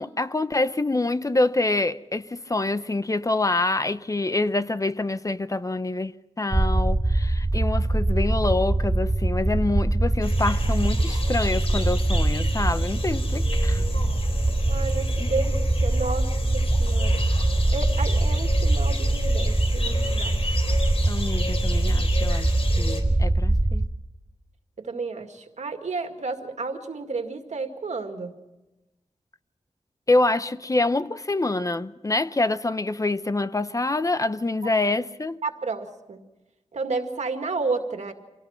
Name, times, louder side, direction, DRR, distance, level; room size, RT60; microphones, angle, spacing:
voice 1, 0.0-13.8 21.1-23.9 30.1-35.4, left 2 dB, 30° left, 0.7 m, -26 dB
sound 1, 6.5-23.9, right 2 dB, 15° right, 0.8 m, -23 dB
sound 2, 10.2-23.0, left 2 dB, 55° left, 4.1 m, -33 dB
voice 2, 14.7-17.2 17.7-20.4 24.8-28.3 34.6-34.7 35.4-36.2 36.7-38.1, right 3 dB, 80° right, 2.2 m, -31 dB
26.0 x 17.5 x 5.9 m
wide cardioid pair, 105°, 12 cm